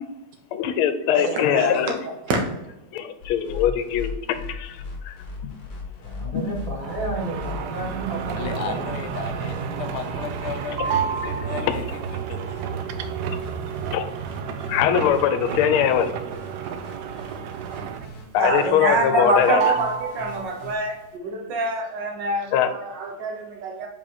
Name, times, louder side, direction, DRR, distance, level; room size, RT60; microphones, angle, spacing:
voice 1, 0.5-1.9 2.9-5.2 5.4-5.5 6.3-6.4 11.6-11.7 13.3-13.4 13.9-14.0 14.7-16.1 18.3-19.7 22.5-22.7, left 9 dB, 85° left, 1.5 m, -22 dB
voice 2, 1.1-2.4 18.4-23.9, right 2 dB, 60° right, 1.6 m, -26 dB
sound 1, 3.2-20.7, left 3 dB, 45° left, 1.7 m, -39 dB
voice 3, 6.0-9.0, right 2 dB, 15° left, 2.0 m, -32 dB
sound 2, 6.8-18.3 18.6-19.2 19.5-20.8, right 7 dB, 80° right, 0.9 m, -30 dB
voice 4, 8.4-12.0 12.3-12.7, left 5 dB, 65° left, 1.1 m, -34 dB
5.1 x 5.0 x 4.2 m
omnidirectional pair, 2.3 m